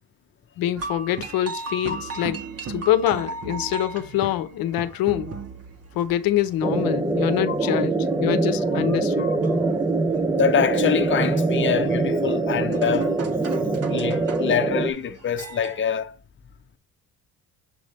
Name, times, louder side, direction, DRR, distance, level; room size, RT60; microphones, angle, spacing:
voice 1, 0.6-2.4 2.7-5.3 5.9-9.3, left 12 dB, 75° left, 0.7 m, -25 dB
sound 1, 0.8-15.8, right 3 dB, 45° right, 1.5 m, -38 dB
voice 2, 1.9-2.3 7.5-7.8 9.2-9.4 10.4-13.1 13.9-16.2, left 8 dB, 35° left, 0.8 m, -25 dB
sound 2, 6.6-14.9, right 3 dB, 10° right, 0.7 m, -23 dB
7.6 x 3.2 x 4.1 m
cardioid pair, 80°, 35 cm